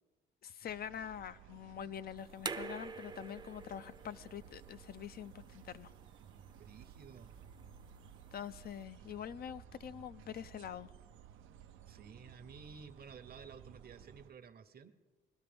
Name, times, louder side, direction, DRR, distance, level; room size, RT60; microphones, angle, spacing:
voice 1, 0.4-5.9 8.3-10.9, left 9 dB, 50° left, 0.4 m, -45 dB
sound 1, 0.7-14.3, right 9 dB, 85° right, 0.5 m, -57 dB
sound 2, 2.2-8.8, right 4 dB, 25° right, 0.6 m, -48 dB
sound 3, 2.4-10.4, left 3 dB, 80° left, 5.6 m, -74 dB
voice 2, 6.6-7.3 11.9-14.9, right 6 dB, 50° right, 0.8 m, -53 dB
21.0 x 12.0 x 3.4 m
cardioid pair, 90°, 20 cm